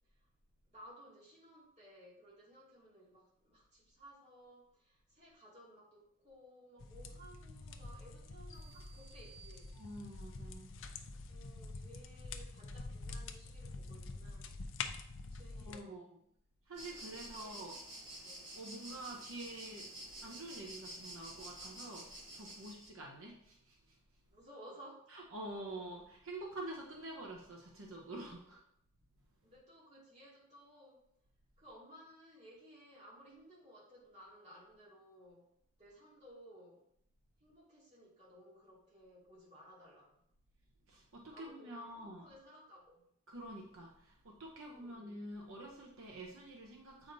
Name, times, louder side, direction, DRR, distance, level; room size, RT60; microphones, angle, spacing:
voice 1, 0.7-9.7 11.3-14.5 15.3-15.9 16.9-17.6 18.2-18.5 24.3-25.1 28.4-28.5 29.4-31.0 31.6-35.5 35.8-36.8 37.4-40.2 41.3-43.1 44.7-45.1, equal, 30° right, -7 dB, 2.5 m, -58 dB
sound 1, 6.8-15.8, left 3 dB, 70° left, 0.5 m, -46 dB
sound 2, 8.5-10.3, right 6 dB, 35° left, 0.8 m, -61 dB
voice 2, 9.7-10.8 15.6-16.0 16.7-17.8 18.5-19.9 20.2-22.1 22.3-24.0 25.1-28.6 40.9-42.3 43.3-47.1, right 1 dB, 80° right, -1 dB, 0.9 m, -47 dB
sound 3, 16.7-22.9, right 1 dB, 55° right, 1.5 m, -50 dB
7.8 x 5.0 x 2.7 m, 0.72 s
head